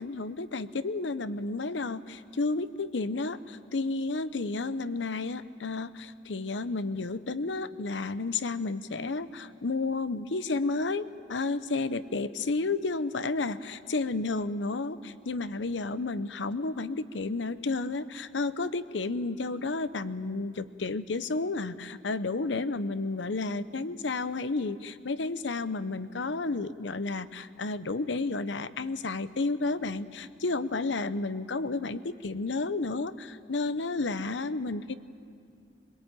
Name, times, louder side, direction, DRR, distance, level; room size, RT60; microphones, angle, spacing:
voice 1, 0.0-34.9, left 3 dB, 80° left, 13 dB, 0.8 m, -31 dB
22.5 x 22.0 x 9.1 m, 2.4 s
head